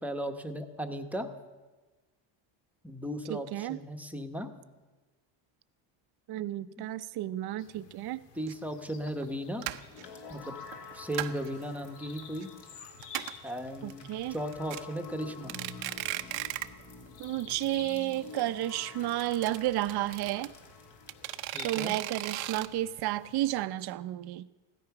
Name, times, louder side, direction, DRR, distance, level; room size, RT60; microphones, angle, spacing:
voice 1, 0.0-1.3 2.8-4.5 6.8-6.9 7.8-7.9 8.4-9.6 10.3-10.5 10.9-12.5 13.4-15.6 21.5-21.9, equal, 5° right, 6 dB, 1.0 m, -36 dB
voice 2, 3.3-3.8 6.3-8.2 13.8-14.4 17.2-20.5 21.6-24.5, right 14 dB, 50° right, 14 dB, 0.7 m, -32 dB
sound 1, 7.6-23.7, left 7 dB, 90° left, 2.0 m, -54 dB
sound 2, 8.5-8.6 9.1-9.3 9.6-10.0 10.7-11.5 11.9-12.4 12.7-12.8 13.0-13.5 13.9-14.0 14.3-14.8 15.3-16.8 17.1-17.2 17.5-17.6 17.8-17.9 19.0-20.5 21.1-22.7, right 17 dB, 90° right, 0.9 m, -36 dB
sound 3, 9.9-21.8, left 4 dB, 55° left, 2.7 m, -49 dB
16.0 x 13.0 x 5.9 m, 1.2 s
cardioid pair, 125°, 49 cm